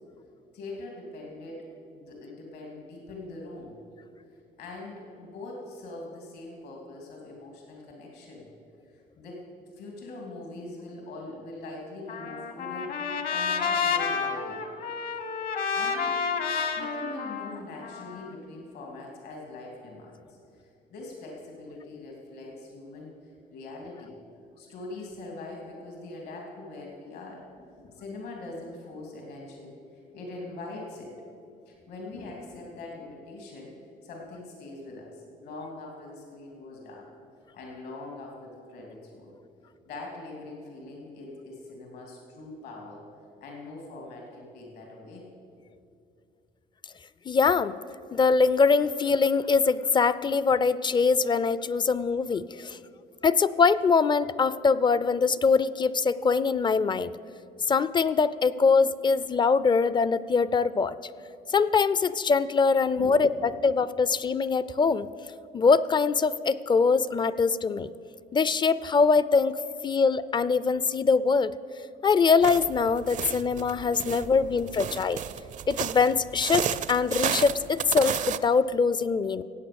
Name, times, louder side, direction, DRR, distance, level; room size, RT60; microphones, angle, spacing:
voice 1, 0.5-1.6 1.9-3.8 4.6-8.5 8.9-9.4 9.8-14.6 15.7-16.1 16.8-24.2 24.6-31.1 31.7-33.7 34.0-37.1 37.5-39.3 39.8-43.0 43.4-45.2 62.9-63.4 74.0-74.8, left 2 dB, 75° left, -1 dB, 3.0 m, -42 dB
Trumpet, 12.1-18.3, left 5 dB, 60° left, 1.3 m, -30 dB
voice 2, 47.3-47.7 48.1-52.8 53.2-57.1 57.7-61.0 61.5-63.3 63.6-65.1 65.5-67.9 68.3-69.6 69.8-71.5 72.0-75.2 75.7-79.4, left 5 dB, 25° left, 17 dB, 0.4 m, -23 dB
sound 1, 72.4-78.4, right 9 dB, 45° right, 0.5 m, -33 dB
16.5 x 8.7 x 7.0 m, 2.6 s
cardioid pair, 110°, 17 cm